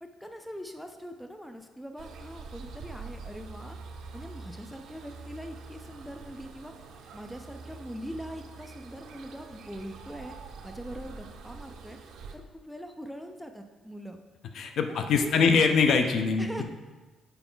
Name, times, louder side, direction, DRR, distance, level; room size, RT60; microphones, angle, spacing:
voice 1, 0.0-3.8 4.1-6.7 7.1-10.3 10.6-12.0 12.3-14.2 15.2-15.5 16.4-16.6, equal, ahead, 5 dB, 0.4 m, -42 dB
sound 1, 2.0-12.4, right 4 dB, 70° right, 0.7 m, -45 dB
voice 2, 14.5-16.6, left 5 dB, 60° left, 6 dB, 0.6 m, -23 dB
6.9 x 4.9 x 3.8 m, 1.2 s
cardioid pair, 140°, 0 cm